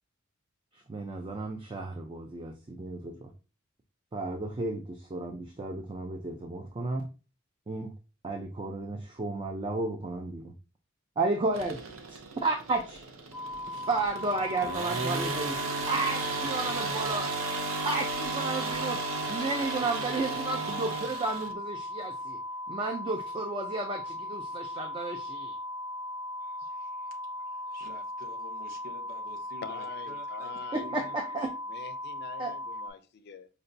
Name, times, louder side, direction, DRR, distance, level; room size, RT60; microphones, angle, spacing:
voice 1, 0.9-3.3 4.1-7.1 7.7-7.9 8.2-10.5 11.2-11.8 12.1-13.1 13.7-17.3 17.8-19.0 19.3-22.4 22.7-25.6 30.7-31.5 32.4-32.5, right 3 dB, 25° right, 0.4 m, -33 dB
sound 1, 11.5-21.5, right 3 dB, 75° right, 0.6 m, -34 dB
sound 2, 13.3-32.9, left 1 dB, 5° right, 0.7 m, -38 dB
voice 2, 26.4-30.5 30.8-31.2, equal, 45° right, 1.0 m, -50 dB
voice 3, 29.6-30.9 31.7-33.5, left 6 dB, 55° left, 0.4 m, -45 dB
5.3 x 2.2 x 2.5 m
head